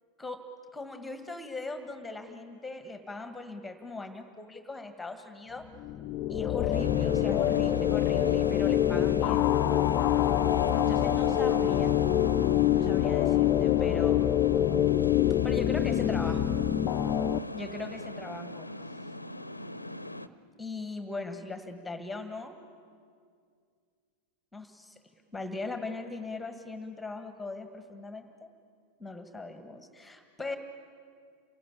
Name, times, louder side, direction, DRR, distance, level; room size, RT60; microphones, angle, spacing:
voice 1, 0.7-5.6 6.3-9.5 10.7-11.9 12.7-14.2 15.4-16.5 17.5-18.7 20.6-22.6 24.5-25.0 25.3-28.5 29.0-30.6, left 3 dB, 5° left, 8 dB, 1.6 m, -39 dB
sound 1, 5.8-17.4, left 12 dB, 35° left, 0.5 m, -25 dB
sound 2, 6.7-20.3, left 1 dB, 85° left, 0.7 m, -39 dB
27.5 x 18.0 x 8.7 m, 2.2 s
figure-of-eight pair, 90°, 0 cm